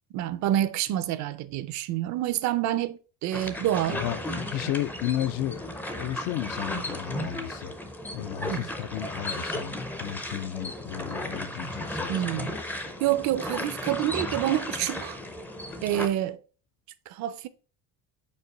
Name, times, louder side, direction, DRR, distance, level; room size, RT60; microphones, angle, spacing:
voice 1, 0.1-4.0 8.5-8.6 12.1-15.2 15.8-16.4 17.1-17.5, right 12 dB, 50° right, 0.5 m, -28 dB
sound 1, 3.3-16.1, left 1 dB, 5° left, 0.5 m, -35 dB
voice 2, 3.9-5.6 5.9-7.7 8.1-12.2 12.5-12.6, left 12 dB, 65° left, 0.6 m, -33 dB
5.4 x 4.6 x 4.7 m
cardioid pair, 170°, 37 cm